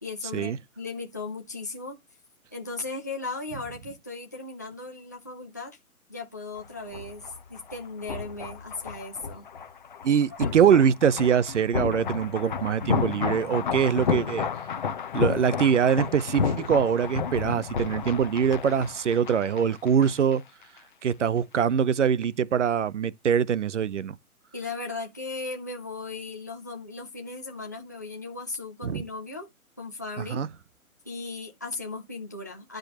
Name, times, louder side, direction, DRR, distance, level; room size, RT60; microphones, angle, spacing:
voice 1, 0.0-2.0 2.5-5.8 6.1-9.4 10.4-10.7 24.5-29.5 29.8-30.4 31.0-32.8, left 3 dB, 15° left, 0.5 m, -37 dB
sound 1, 6.6-20.4 20.6-20.8, left 6 dB, 35° left, 0.9 m, -32 dB
voice 2, 10.0-14.5 15.1-20.4 21.0-24.2 28.8-29.0 30.3-30.5, right 7 dB, 55° right, 0.7 m, -23 dB
11.5 x 5.1 x 2.9 m
hypercardioid pair, 165°, 44 cm